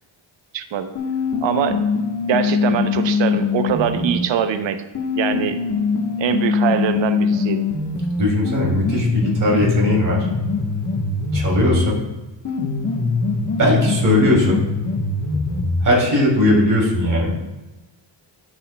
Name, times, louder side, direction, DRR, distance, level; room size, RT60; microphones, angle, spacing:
voice 1, 0.5-0.9 1.4-1.8 2.3-4.8 5.1-5.6 6.2-7.7, right 8 dB, 70° right, 9 dB, 0.7 m, -22 dB
sound 1, 1.0-4.2 5.0-11.9 12.5-15.9, left 4 dB, 40° left, 1.2 m, -22 dB
voice 2, 8.2-10.3 11.3-12.0 13.6-14.6 15.8-17.4, left 1 dB, 40° right, -2 dB, 2.6 m, -18 dB
13.5 x 6.1 x 2.2 m, 1.1 s
wide cardioid pair, 160°, 47 cm